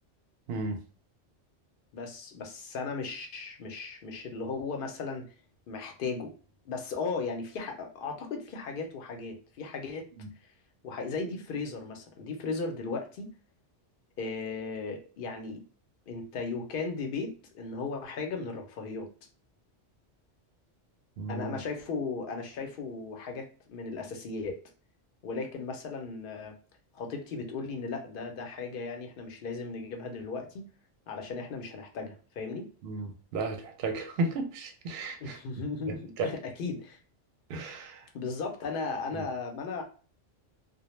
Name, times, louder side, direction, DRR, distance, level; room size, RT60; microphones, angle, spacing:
voice 1, 1.9-5.3 5.7-6.3 6.6-10.1 10.8-13.3 14.2-15.6 16.1-19.1 21.3-24.6 25.2-26.5 26.9-30.7 31.1-32.7 35.2-37.0 38.1-39.8, left 4 dB, 60° left, 3 dB, 0.6 m, -36 dB
voice 2, 21.2-21.6 32.8-35.4 36.2-36.3 37.5-38.1 39.1-39.2, right 3 dB, 65° right, 5 dB, 0.7 m, -34 dB
2.2 x 2.0 x 3.0 m, 0.38 s
omnidirectional pair, 1.2 m